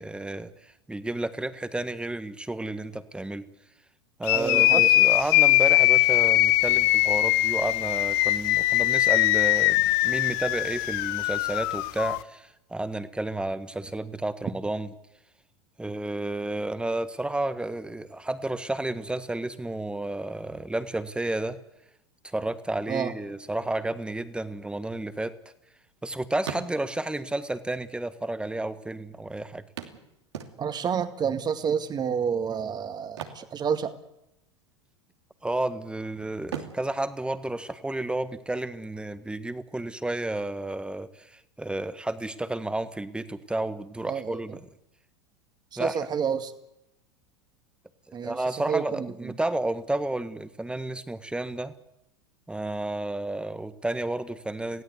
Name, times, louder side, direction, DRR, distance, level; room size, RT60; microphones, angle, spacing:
voice 1, 0.0-3.5 4.2-14.9 15.8-21.6 22.2-25.4 26.0-29.6 35.4-44.7 45.8-46.0 48.2-51.7 52.5-54.8, right 2 dB, 5° right, 12 dB, 1.6 m, -31 dB
sound 1, 4.2-12.2, left 18 dB, 55° left, 1.0 m, -21 dB
voice 2, 4.3-4.9 22.9-23.1 30.6-33.9 44.1-44.4 45.7-46.5 48.1-48.4 48.7-49.1, right 7 dB, 30° right, 9 dB, 2.2 m, -29 dB
sound 2, 25.0-26.0 26.3-27.2 28.1-28.2 28.4-28.5 29.8-31.0 33.0-34.3 34.6-34.8 35.3-35.9 36.4-38.2 40.2-40.3 40.7-40.8, right 8 dB, 75° right, 2.7 m, -41 dB
27.5 x 17.0 x 8.3 m, 0.86 s
hypercardioid pair, 85°, 15 cm